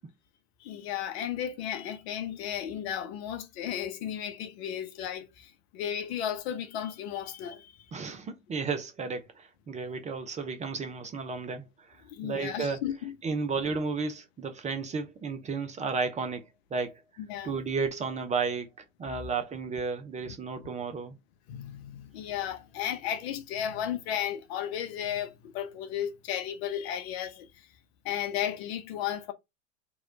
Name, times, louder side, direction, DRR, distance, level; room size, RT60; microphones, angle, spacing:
voice 1, 0.6-7.7 12.0-13.1 17.2-17.5 20.2-20.3 21.5-27.7 28.0-29.3, left 10 dB, 55° left, 0.8 m, -34 dB
voice 2, 7.9-12.0 12.2-12.8 13.2-17.0 17.4-18.7 19.0-21.2, right 4 dB, 20° right, 0.6 m, -33 dB
3.1 x 3.0 x 3.6 m
hypercardioid pair, 90°, 38 cm